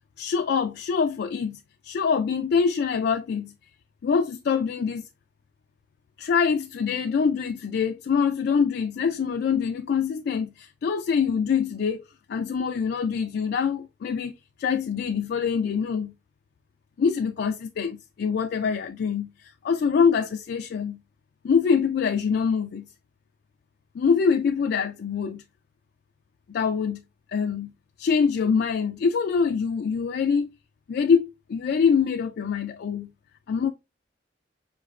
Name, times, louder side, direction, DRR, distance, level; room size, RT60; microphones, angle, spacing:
voice 1, 0.2-1.6 1.8-3.5 4.0-5.1 6.2-12.0 12.3-14.3 14.6-16.1 17.0-21.0 21.4-22.9 23.9-25.4 26.5-27.0 27.3-27.7 28.0-30.5 30.9-33.1 33.5-33.7, left 6 dB, 60° left, 0.3 m, -24 dB
4.8 x 3.0 x 2.4 m
head